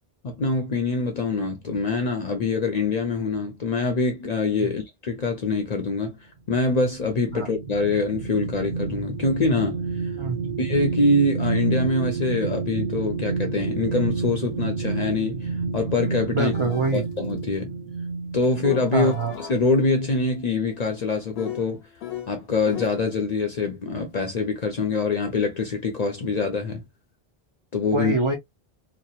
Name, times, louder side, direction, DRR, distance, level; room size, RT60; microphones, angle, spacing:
voice 1, 0.2-6.2 6.5-10.1 10.6-16.5 16.9-17.7 18.3-21.8 22.3-26.8 27.7-28.1, left 3 dB, 50° left, 0.6 m, -24 dB
sound 1, 7.0-19.4 19.9-20.1, right 4 dB, 65° right, 0.7 m, -30 dB
voice 2, 10.2-10.5 16.3-17.1 18.9-19.3 27.9-28.3, right 4 dB, 50° right, 0.4 m, -25 dB
sound 2, 16.5-17.1 18.4-23.0, left 10 dB, 80° left, 0.8 m, -38 dB
2.9 x 2.1 x 2.2 m
omnidirectional pair, 1.0 m